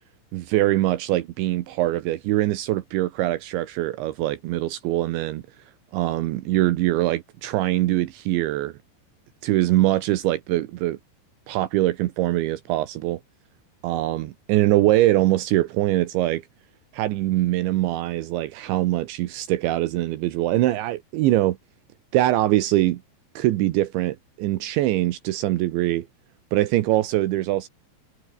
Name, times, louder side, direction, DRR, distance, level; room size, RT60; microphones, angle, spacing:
voice 1, 0.3-5.4 5.9-8.7 9.4-11.0 11.5-13.2 13.8-16.4 16.9-21.6 22.1-23.0 23.4-26.1 26.5-27.7, right 15 dB, 80° right, 3.4 m, -23 dB
omnidirectional pair, 5.5 m